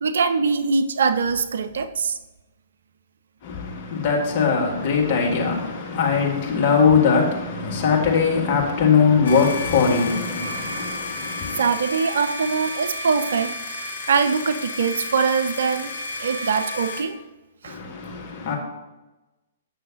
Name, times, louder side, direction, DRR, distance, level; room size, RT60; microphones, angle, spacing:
voice 1, 0.0-2.2 11.6-13.5 14.1-15.9 16.2-17.2 17.6-17.8, right 5 dB, 60° right, 0.4 m, -22 dB
voice 2, 3.4-11.6 17.6-18.6, left 5 dB, 40° left, 1.6 m, -21 dB
sound 1, 9.2-17.0, left 2 dB, 65° left, 1.0 m, -32 dB
8.2 x 6.1 x 2.8 m
figure-of-eight pair, 115°, 0 cm